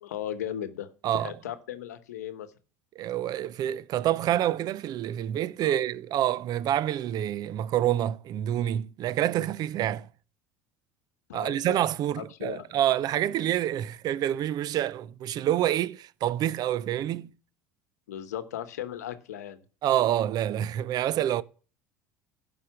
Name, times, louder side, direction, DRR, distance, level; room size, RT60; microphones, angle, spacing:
voice 1, 0.0-2.5 5.6-5.8 11.3-11.8 12.2-12.7 18.1-19.6, left 10 dB, 85° left, 0.9 m, -37 dB
voice 2, 3.0-10.1 11.3-17.3 19.8-21.4, right 12 dB, 50° right, 0.5 m, -27 dB
11.5 x 5.2 x 5.8 m
hypercardioid pair, 80°, 9 cm